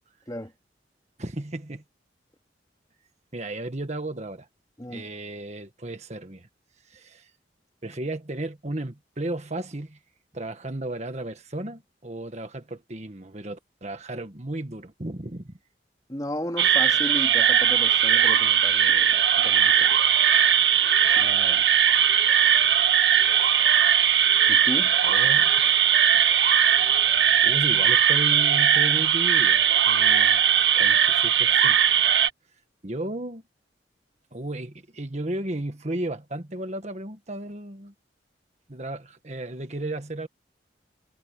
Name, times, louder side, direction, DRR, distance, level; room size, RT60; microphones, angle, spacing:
voice 1, 1.2-1.8 3.3-4.5 4.9-6.5 6.8-7.3 7.8-10.0 10.3-15.6 25.0-25.7 26.1-26.2 27.4-30.4 30.7-31.8 32.8-33.4 34.3-37.9 38.7-40.3, right 1 dB, 40° right, 1.6 m, -34 dB
voice 2, 16.1-20.0 21.2-21.7 24.5-25.0, left 1 dB, 20° left, 3.0 m, -35 dB
sound 1, 16.6-32.3, right 9 dB, 80° right, 1.4 m, -19 dB
head